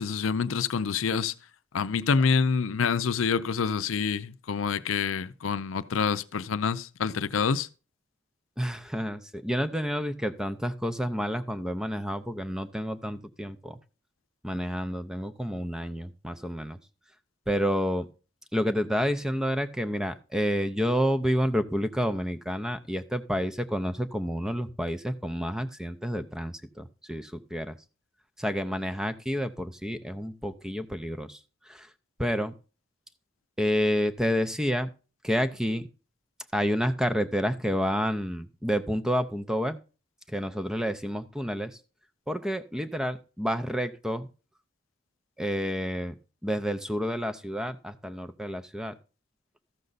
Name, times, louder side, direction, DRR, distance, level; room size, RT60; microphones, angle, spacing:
voice 1, 0.0-1.3 1.7-7.7, left 5 dB, 90° left, 0.5 m, -27 dB
voice 2, 8.6-13.8 14.4-16.8 17.5-18.1 18.5-27.7 28.4-31.4 31.7-31.9 32.2-32.5 33.6-34.9 35.2-35.9 36.5-39.8 40.3-41.7 42.3-44.3 45.4-46.2 46.4-49.0, equal, 5° right, 0.5 m, -29 dB
13.5 x 6.5 x 4.0 m
head